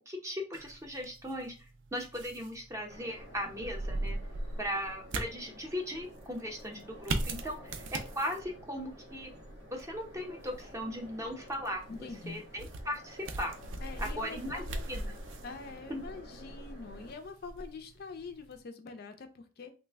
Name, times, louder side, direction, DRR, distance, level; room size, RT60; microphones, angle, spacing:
voice 1, 0.1-4.2 4.6-9.3 9.7-13.5 14.0-15.1 15.9-16.0, equal, 15° right, 2 dB, 0.6 m, -38 dB
sound 1, 0.5-18.6, right 2 dB, 65° right, 0.4 m, -41 dB
sound 2, 2.9-17.1, equal, 85° right, 1.0 m, -49 dB
voice 2, 11.9-12.4 13.8-14.8 15.4-19.7, left 4 dB, 50° left, 7 dB, 0.4 m, -45 dB
3.2 x 2.1 x 3.3 m, 0.35 s
head